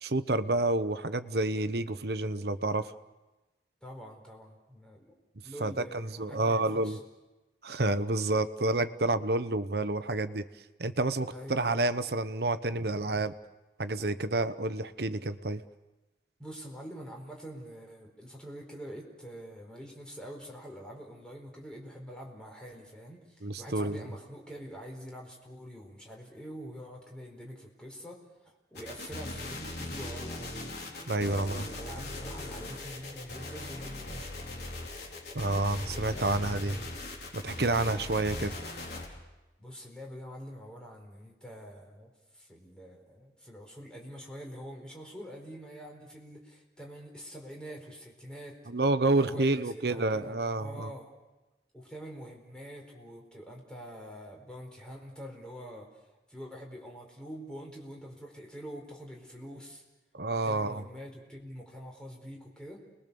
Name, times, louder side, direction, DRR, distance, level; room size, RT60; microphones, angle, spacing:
voice 1, 0.0-2.9 5.6-7.0 7.6-10.5 10.8-13.3 13.8-15.6 23.4-24.1 31.1-31.7 35.3-36.8 37.3-38.6 48.7-50.9 60.1-60.8, right 2 dB, 60° right, 12 dB, 1.0 m, -29 dB
voice 2, 3.8-5.1 5.4-7.0 11.3-11.5 16.4-34.6 35.3-36.8 37.7-38.0 39.6-48.6 49.1-51.1 51.7-56.0 56.3-59.8 60.4-62.8, equal, 5° left, 0 dB, 4.5 m, -45 dB
sound 1, 28.8-39.1, left 2 dB, 60° left, 4.5 m, -40 dB
30.0 x 21.0 x 7.0 m, 1.1 s
head